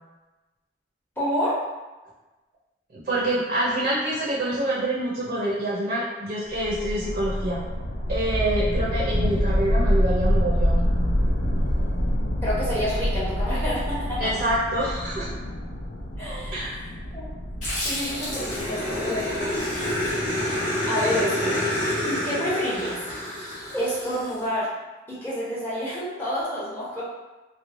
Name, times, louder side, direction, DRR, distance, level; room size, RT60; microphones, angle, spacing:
voice 1, 1.2-1.6 12.4-14.3 16.2-16.7 17.1-17.3 17.8-19.5 19.8-19.9 20.9-21.6 22.0-22.9 23.7-24.7 25.1-27.0, equal, 10° left, -9 dB, 0.7 m, -28 dB
voice 2, 3.0-7.6 8.1-10.9 14.2-15.3 16.5-16.8, right 1 dB, 45° right, -6 dB, 0.5 m, -26 dB
sound 1, 6.5-19.6, equal, 75° left, 0.4 m, -26 dB
Growling, 17.6-24.3, left 1 dB, 45° left, 1.0 m, -28 dB
3.0 x 2.1 x 2.4 m, 1.1 s
head